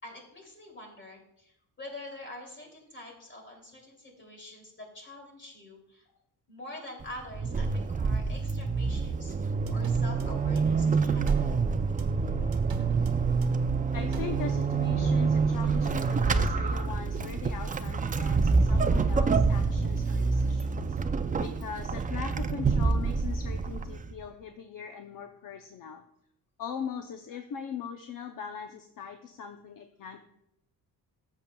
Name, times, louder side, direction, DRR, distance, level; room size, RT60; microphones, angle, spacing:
voice 1, 0.0-6.1 6.5-9.3 9.7-11.6, left 1 dB, 30° left, 1 dB, 2.7 m, -46 dB
Vehicle / Accelerating revving vroom / Squeak, 7.0-24.2, right 4 dB, 20° right, 0.4 m, -27 dB
sound 1, 9.7-10.9 11.3-11.7 12.0-13.8 14.1-14.4, right 4 dB, 60° right, 1.1 m, -45 dB
voice 2, 13.9-21.0 21.4-26.0 26.6-30.2, left 7 dB, 55° left, 6 dB, 0.7 m, -40 dB
13.5 x 7.2 x 2.3 m, 0.79 s
cardioid pair, 130°, 39 cm